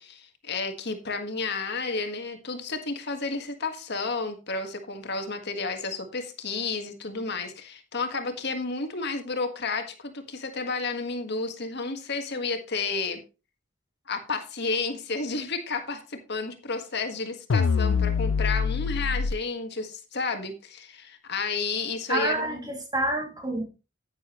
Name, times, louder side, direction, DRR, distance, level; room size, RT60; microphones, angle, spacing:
voice 1, 0.0-13.2 14.1-22.7, left 4 dB, 60° left, 1.6 m, -31 dB
sound 1, 17.5-19.3, left 5 dB, 90° left, 0.5 m, -24 dB
voice 2, 22.1-23.6, right 1 dB, 20° right, 2.4 m, -28 dB
10.5 x 9.5 x 3.1 m
head